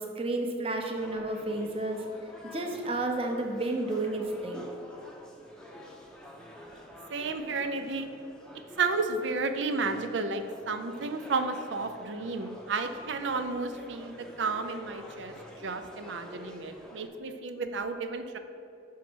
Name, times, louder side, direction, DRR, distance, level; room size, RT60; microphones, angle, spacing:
voice 1, 0.0-2.0 2.5-4.6, right 2 dB, 30° right, 2 dB, 0.8 m, -31 dB
sound 1, 1.0-17.1, equal, 5° left, 0.7 m, -49 dB
voice 2, 7.1-8.1 8.5-15.3 15.6-18.4, right 4 dB, 80° right, 8 dB, 0.6 m, -32 dB
6.1 x 4.6 x 6.1 m, 2.7 s
head